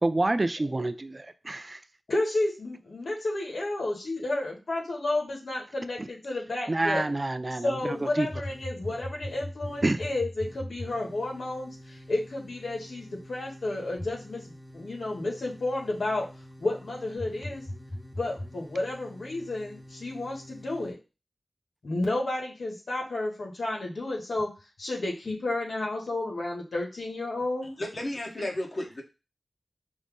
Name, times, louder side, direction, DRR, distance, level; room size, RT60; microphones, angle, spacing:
voice 1, 0.0-1.8 6.0-6.1 6.7-7.7 8.2-8.3 9.8-10.0, right 2 dB, 35° right, 11 dB, 0.3 m, -27 dB
voice 2, 2.1-7.0 7.5-16.3 16.6-17.6 18.2-21.0 21.8-24.5 24.8-27.7, left 2 dB, 85° left, -1 dB, 1.2 m, -31 dB
sound 1, 7.8-20.9, left 1 dB, 15° left, 0.7 m, -42 dB
voice 3, 27.8-29.0, left 1 dB, 50° left, 1 dB, 1.1 m, -33 dB
5.2 x 2.0 x 3.6 m, 0.30 s
wide cardioid pair, 70°, 0 cm